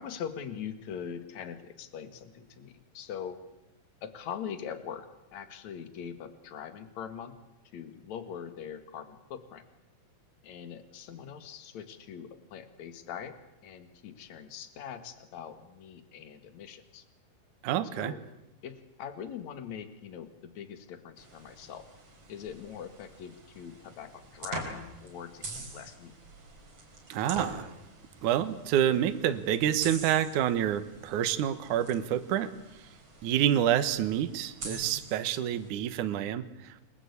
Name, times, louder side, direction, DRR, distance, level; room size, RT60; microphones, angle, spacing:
voice 1, 0.0-3.4 4.0-7.4 7.7-9.6 10.4-13.3 13.6-17.0 18.0-18.3 18.6-21.8 22.3-26.1, left 8 dB, 50° left, 9 dB, 2.8 m, -42 dB
voice 2, 17.6-18.1 27.1-27.7 28.2-32.5 33.2-36.7, right 10 dB, 65° right, 10 dB, 2.3 m, -28 dB
sound 1, 21.2-35.7, right 2 dB, 40° right, 5.7 m, -45 dB
30.0 x 22.0 x 8.4 m, 0.96 s
omnidirectional pair, 4.6 m